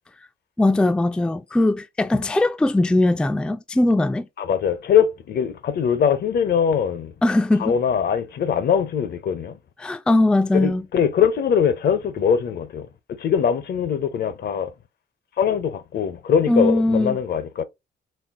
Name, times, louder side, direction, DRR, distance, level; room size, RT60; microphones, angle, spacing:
voice 1, 0.6-4.3 7.2-7.8 9.8-10.8 16.5-17.2, left 2 dB, 5° left, 0.3 m, -20 dB
voice 2, 4.4-7.1 7.6-9.6 10.5-12.9 13.2-14.7 15.4-17.6, left 7 dB, 55° left, 0.6 m, -22 dB
4.2 x 2.0 x 3.5 m
cardioid pair, 90°, 20 cm